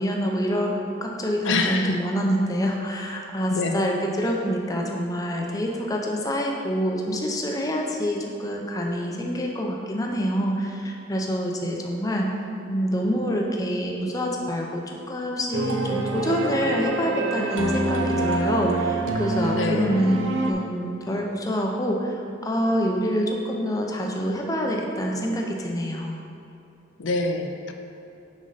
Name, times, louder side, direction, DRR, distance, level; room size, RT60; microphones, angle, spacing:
voice 1, 0.0-12.3 12.7-20.2 20.4-26.2, equal, 20° left, 0 dB, 0.5 m, -26 dB
voice 2, 1.4-2.0 3.5-3.8 19.6-20.0 27.0-27.7, left 3 dB, 75° left, 4 dB, 0.5 m, -26 dB
sound 1, 15.5-20.5, right 2 dB, 85° right, 0.6 m, -26 dB
6.5 x 5.2 x 3.9 m, 2.8 s
head